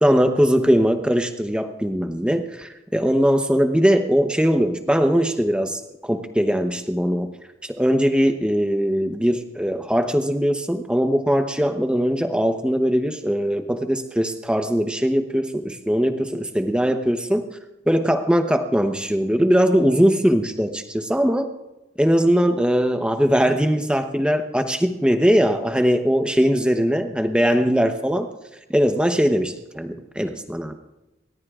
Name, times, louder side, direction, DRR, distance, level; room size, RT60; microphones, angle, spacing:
voice 1, 0.0-7.3 7.6-17.5 17.9-21.5 22.0-28.3 28.7-30.7, equal, 5° right, 6 dB, 0.9 m, -20 dB
29.0 x 13.5 x 2.5 m, 0.99 s
head